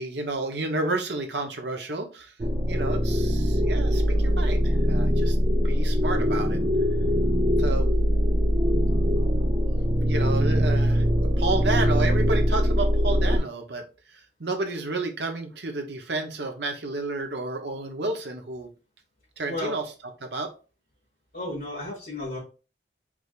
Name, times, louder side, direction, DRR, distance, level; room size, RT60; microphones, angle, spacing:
voice 1, 0.0-2.3 2.7-5.4 5.6-6.6 7.6-7.9 10.1-11.0 11.4-13.8 14.4-18.7 19.4-19.8 20.2-20.5, right 2 dB, 70° right, 4 dB, 0.9 m, -31 dB
sound 1, 2.4-13.4, equal, 25° right, 0.4 m, -22 dB
voice 2, 21.3-22.4, left 1 dB, 60° left, -9 dB, 2.1 m, -33 dB
4.8 x 3.4 x 2.5 m, 0.33 s
head